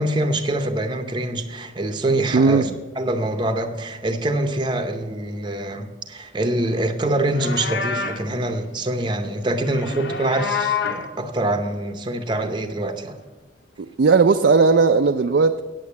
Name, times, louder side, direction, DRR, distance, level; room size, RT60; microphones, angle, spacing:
voice 1, 0.0-2.7 3.0-13.2, right 1 dB, 25° right, 0.7 m, -25 dB
voice 2, 2.3-2.7 14.0-15.6, right 4 dB, 60° right, 0.4 m, -16 dB
Livestock farm animals working animals, 7.2-8.3 9.6-11.1, left 6 dB, 55° left, 0.7 m, -27 dB
8.9 x 8.6 x 7.1 m
head